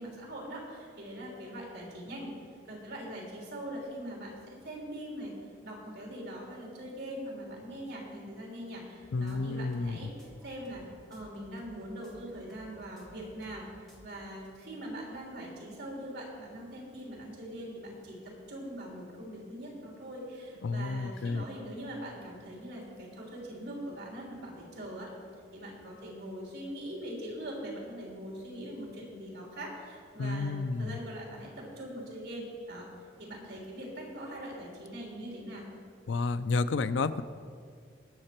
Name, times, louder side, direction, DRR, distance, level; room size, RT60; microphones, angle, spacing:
voice 1, 0.0-2.3 2.7-5.4 5.6-10.8 11.1-13.7 14.0-25.1 25.5-32.9 33.2-35.7, right 1 dB, 65° right, -2 dB, 3.4 m, -42 dB
sound 1, 9.0-13.6 13.9-14.1, equal, ahead, 1.6 m, -57 dB
voice 2, 9.1-10.1 20.6-21.4 30.2-31.0 36.1-37.2, left 3 dB, 90° left, 13 dB, 0.5 m, -31 dB
19.5 x 6.6 x 4.4 m, 2.2 s
head